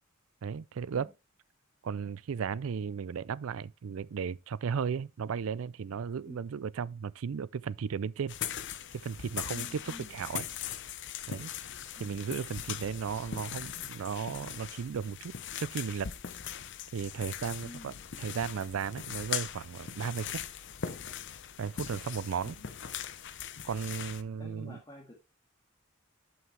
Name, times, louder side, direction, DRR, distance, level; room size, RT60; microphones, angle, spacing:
voice 1, 0.4-1.1 1.8-8.3 8.9-10.4 11.3-11.5 12.0-16.1 16.9-20.4 21.6-22.6 23.6-24.8, right 6 dB, 75° right, 0.4 m, -35 dB
sound 1, 8.3-24.2, left 9 dB, 60° left, 0.7 m, -40 dB
voice 2, 9.5-10.2 11.9-12.2 17.6-18.0 22.5-22.7 24.4-25.1, left 1 dB, 20° left, 2.0 m, -49 dB
11.0 x 5.8 x 3.3 m
head